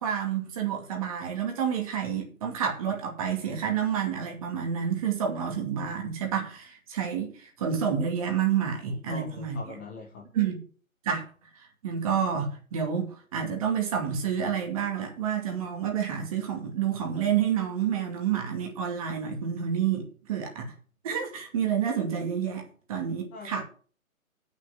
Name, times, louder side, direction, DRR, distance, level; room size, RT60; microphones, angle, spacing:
voice 1, 0.0-9.6 10.3-10.6 11.0-11.2 11.8-20.7 21.0-23.6, right 8 dB, 25° right, 2.4 m, -29 dB
voice 2, 8.9-10.2 23.3-23.6, left 3 dB, 10° left, 0.8 m, -42 dB
8.8 x 6.4 x 8.0 m
figure-of-eight pair, 150°, 42 cm